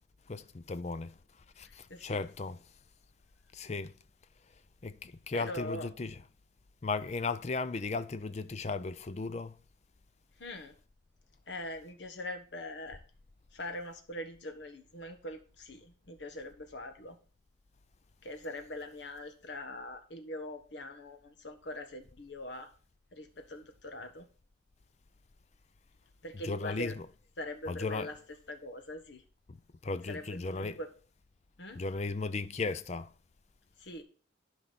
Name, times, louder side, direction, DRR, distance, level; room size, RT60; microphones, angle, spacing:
voice 1, 0.3-1.2 1.6-2.6 3.5-3.9 4.8-6.2 6.8-9.6 26.4-26.9 27.7-28.1 29.5-29.6 29.8-30.8 31.7-33.1, left 3 dB, 35° left, 0.4 m, -36 dB
voice 2, 1.6-2.2 5.3-5.9 10.4-10.7 11.5-13.0 13.5-17.2 18.2-22.7 23.1-24.3 26.2-27.0 27.4-28.2 28.5-29.2 30.1-30.9 31.6-31.8 33.8-34.0, left 1 dB, 65° left, 1.4 m, -42 dB
11.5 x 4.7 x 4.1 m
head